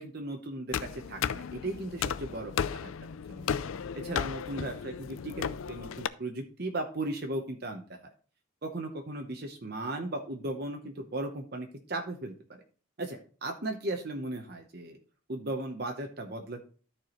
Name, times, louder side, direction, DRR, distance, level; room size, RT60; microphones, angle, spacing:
voice 1, 0.0-2.9 3.3-3.5 3.9-8.0 8.6-12.3 13.0-15.0 15.3-16.6, right 2 dB, 50° right, 4 dB, 0.8 m, -36 dB
sound 1, 0.7-6.1, left 7 dB, 80° left, 0.4 m, -34 dB
13.0 x 4.7 x 3.0 m, 0.40 s
head